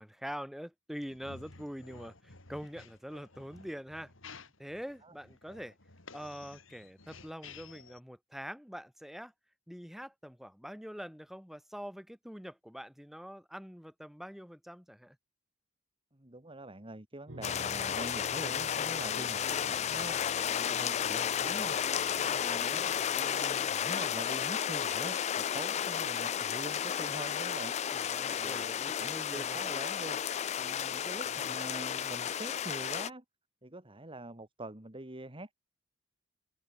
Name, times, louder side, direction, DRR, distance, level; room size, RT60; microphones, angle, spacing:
voice 1, 0.0-4.1 4.6-5.8 6.1-9.3 9.7-15.2 19.6-20.2 22.7-23.0 27.9-29.6 31.3-31.5, equal, ahead, 3.8 m, -45 dB
sound 1, 1.0-8.0, left 4 dB, 85° left, 4.2 m, -53 dB
voice 2, 16.1-20.2 20.5-21.8 22.2-22.8 23.1-27.7 28.3-30.2 30.6-33.2 33.6-35.6, right 1 dB, 25° right, 2.8 m, -45 dB
sound 2, 17.3-23.2, right 1 dB, 80° right, 2.5 m, -50 dB
sound 3, 17.4-33.1, left 9 dB, 35° left, 0.3 m, -33 dB
open air
head